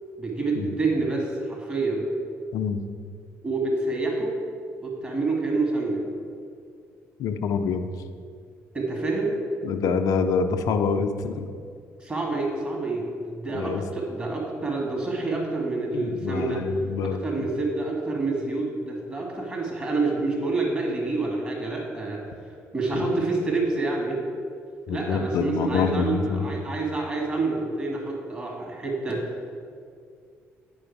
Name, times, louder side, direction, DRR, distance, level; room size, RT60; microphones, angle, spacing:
voice 1, 0.2-2.1 3.4-4.4 4.8-6.0 8.7-9.4 12.0-16.6 17.0-22.2 22.7-24.2 24.9-29.2, right 3 dB, 25° right, -1 dB, 1.7 m, -27 dB
voice 2, 7.2-7.9 9.6-11.5 13.5-13.8 15.9-17.2 22.9-23.1 24.9-26.4, left 5 dB, 55° left, 8 dB, 0.5 m, -26 dB
8.8 x 5.0 x 4.6 m, 2.2 s
figure-of-eight pair, 45°, 7 cm